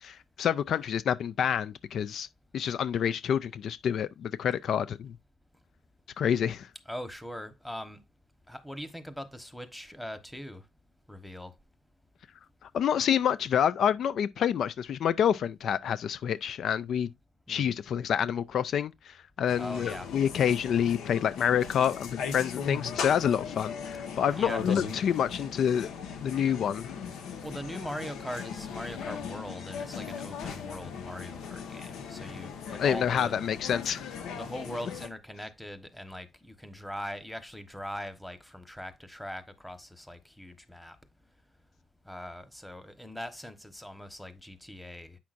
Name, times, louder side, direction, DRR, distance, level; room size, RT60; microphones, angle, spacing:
voice 1, 0.0-2.3 2.5-5.1 6.2-6.7 12.6-17.1 17.5-25.9 26.2-26.9 32.8-34.0, left 8 dB, 65° left, 0.4 m, -28 dB
voice 2, 6.9-8.0 8.5-10.6 11.1-11.5 17.5-17.7 19.6-20.1 24.3-24.8 27.4-33.8 34.3-41.0 42.1-45.2, equal, 5° left, 1.1 m, -41 dB
sound 1, 19.5-35.1, left 6 dB, 85° left, 1.2 m, -38 dB
8.4 x 5.9 x 2.5 m
cardioid pair, 90°, 0 cm